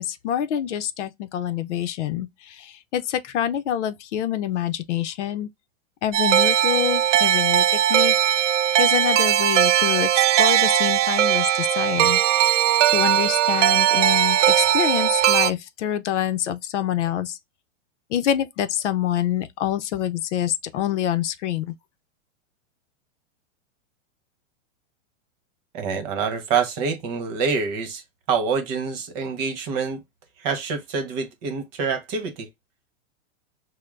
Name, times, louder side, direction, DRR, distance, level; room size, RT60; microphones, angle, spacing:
voice 1, 0.0-5.5 6.0-8.2 8.8-12.2 12.9-17.4 18.1-21.7, left 11 dB, 65° left, 0.7 m, -26 dB
sound 1, 6.1-15.5, right 11 dB, 75° right, 0.5 m, -19 dB
voice 2, 25.7-28.0 28.3-30.0 30.4-32.5, right 5 dB, 35° right, 1.1 m, -26 dB
6.5 x 2.2 x 2.5 m
supercardioid pair, 160°, 38 cm